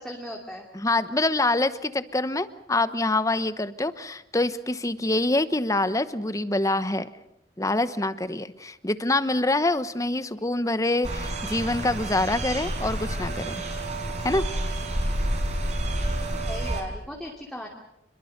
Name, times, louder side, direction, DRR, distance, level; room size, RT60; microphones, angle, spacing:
voice 1, 0.0-0.7 16.1-17.7, equal, 5° left, -1 dB, 2.6 m, -38 dB
voice 2, 0.7-7.1 7.6-13.6 14.2-14.4, left 2 dB, 20° left, 13 dB, 1.0 m, -25 dB
sound 1, 11.0-16.8, right 1 dB, 40° right, 5.1 m, -29 dB
27.0 x 22.5 x 6.7 m, 0.82 s
head